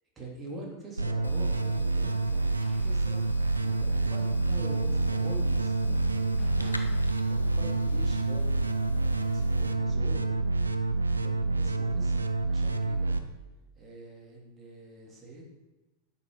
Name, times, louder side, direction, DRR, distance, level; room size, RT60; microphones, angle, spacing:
voice 1, 0.2-3.3 3.6-6.8 7.3-10.7 11.2-13.2 13.7-15.4, right 2 dB, 20° right, -2 dB, 3.2 m, -45 dB
sound 1, 1.0-13.2, right 2 dB, 80° right, 0.6 m, -27 dB
sound 2, 1.2-9.7, left 1 dB, 85° left, 0.7 m, -48 dB
sound 3, 2.6-3.8 4.2-4.5 4.8-5.6 6.0-6.1 6.4-8.2, left 1 dB, ahead, 2.1 m, -52 dB
11.0 x 7.1 x 5.0 m, 1.1 s
figure-of-eight pair, 90°, 0 cm